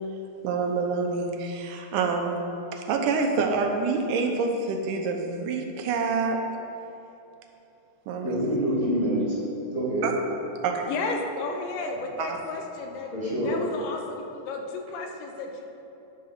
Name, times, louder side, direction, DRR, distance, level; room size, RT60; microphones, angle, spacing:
voice 1, 0.4-2.4 2.7-6.5 8.1-8.5 10.0-10.1 10.6-10.9 12.2-12.4, right 4 dB, 80° right, 3 dB, 2.2 m, -27 dB
voice 2, 8.2-9.4 9.7-10.1 11.7-11.8 13.1-13.5, equal, 40° left, -10 dB, 0.5 m, -26 dB
voice 3, 10.9-13.1 13.4-15.7, left 3 dB, 90° left, 3 dB, 2.5 m, -33 dB
10.0 x 3.8 x 5.7 m, 2.9 s
omnidirectional pair, 3.8 m